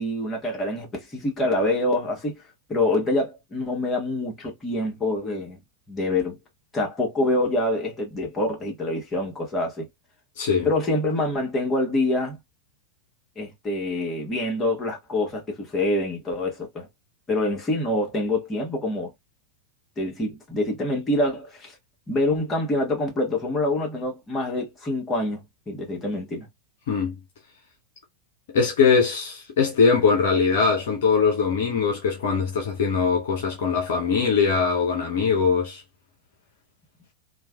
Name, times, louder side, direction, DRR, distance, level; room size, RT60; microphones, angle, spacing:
voice 1, 0.0-2.4 2.7-5.6 5.9-6.4 6.7-9.9 10.6-12.4 13.4-16.9 17.3-19.1 20.0-21.7 22.1-26.5, left 1 dB, 20° left, 1.4 m, -26 dB
voice 2, 10.4-10.7 26.9-27.2 28.5-35.8, left 5 dB, 55° left, 0.6 m, -21 dB
3.2 x 2.3 x 2.2 m
figure-of-eight pair, 90°, 0 cm